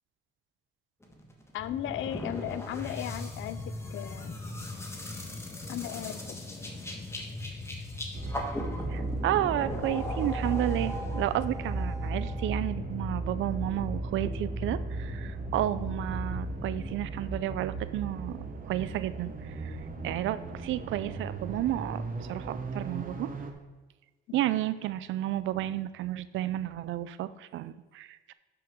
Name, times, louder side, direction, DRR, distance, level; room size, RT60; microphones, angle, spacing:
sound 1, 1.0-12.5, left 1 dB, 15° left, 1.5 m, -40 dB
voice 1, 1.5-4.4 5.7-6.4, left 12 dB, 80° left, 15 dB, 0.5 m, -36 dB
sound 2, 1.6-17.0, left 2 dB, 30° left, 0.9 m, -41 dB
sound 3, 8.1-23.5, right 2 dB, 45° right, 1.1 m, -36 dB
voice 2, 8.9-19.8 20.0-23.3 24.3-28.3, right 13 dB, 80° right, 15 dB, 0.5 m, -32 dB
10.5 x 5.9 x 3.7 m, 1.2 s
cardioid pair, 90°, 20 cm